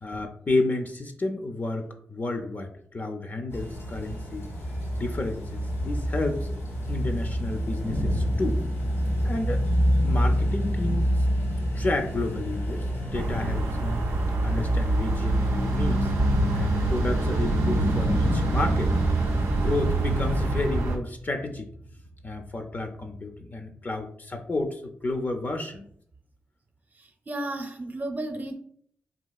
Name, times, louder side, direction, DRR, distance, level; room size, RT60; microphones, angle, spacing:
voice 1, 0.0-4.5 4.9-6.5 6.9-8.6 9.2-9.7 10.0-11.3 11.7-12.9 13.1-14.0 14.4-16.1 16.5-18.9 19.5-21.7 22.2-25.8, left 2 dB, 40° left, 5 dB, 0.4 m, -31 dB
sound 1, 3.5-20.5, equal, 80° left, 1.2 m, -28 dB
sound 2, 13.1-21.0, right 2 dB, 90° right, 0.4 m, -26 dB
voice 2, 27.0-28.5, right 1 dB, 40° right, 4 dB, 0.6 m, -33 dB
3.9 x 2.7 x 2.3 m, 0.64 s
cardioid pair, 50°, 5 cm